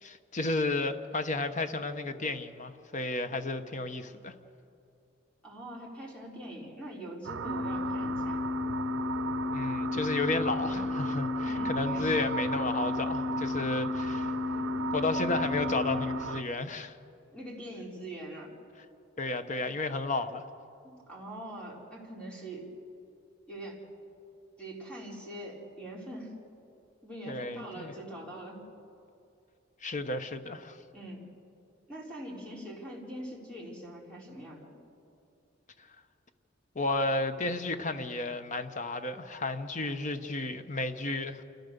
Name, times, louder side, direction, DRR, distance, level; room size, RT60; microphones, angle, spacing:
voice 1, 0.0-4.3 9.5-14.3 14.9-17.0 19.2-20.4 27.3-27.9 29.8-30.8 36.7-41.4, left 2 dB, 40° left, 9 dB, 1.0 m, -32 dB
voice 2, 5.4-8.4 10.7-10.9 11.4-12.3 17.3-18.5 20.8-22.7 23.5-23.8 24.6-26.3 27.0-28.6 30.9-31.3 31.9-34.7, right 1 dB, 5° left, -3 dB, 4.1 m, -43 dB
sound 1, 7.2-16.4, right 6 dB, 85° right, 0.6 m, -37 dB
sound 2, 7.4-16.2, left 4 dB, 70° left, 2.5 m, -33 dB
28.0 x 14.5 x 6.9 m, 2.6 s
head